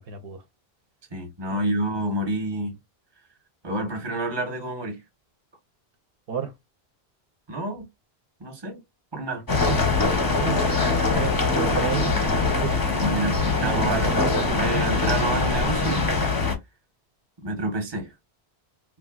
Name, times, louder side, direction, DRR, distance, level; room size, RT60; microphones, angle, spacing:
voice 1, 0.1-0.4 1.5-1.6 6.3-6.5 9.6-9.8 10.4-10.9 11.1-12.8 13.6-14.6, right 6 dB, 70° right, 0.8 m, -31 dB
voice 2, 1.1-2.8 3.6-5.0 7.5-7.9 8.4-8.8 9.1-9.4 13.0-14.1 14.4-16.2 17.4-18.1, right 2 dB, 25° right, 0.8 m, -28 dB
sound 1, 9.5-16.6, left 4 dB, 25° left, 0.5 m, -23 dB
sound 2, 10.8-15.9, right 5 dB, 50° right, 0.4 m, -38 dB
3.2 x 2.2 x 2.3 m
omnidirectional pair, 1.1 m